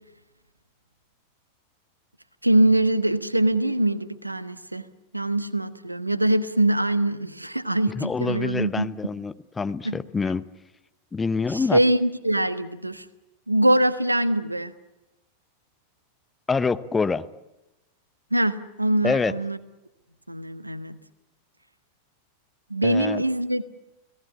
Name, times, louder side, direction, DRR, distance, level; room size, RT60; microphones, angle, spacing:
voice 1, 2.4-4.8 5.1-8.9 9.8-9.9 11.5-13.0 13.5-14.7 18.3-19.6 20.3-21.0 22.7-23.8, right 1 dB, 85° right, 1.2 m, -23 dB
voice 2, 8.0-10.5 11.1-11.8 16.5-17.3 19.0-19.3 22.8-23.2, left 4 dB, 15° left, 0.9 m, -26 dB
30.0 x 18.5 x 8.4 m
figure-of-eight pair, 90°, 0 cm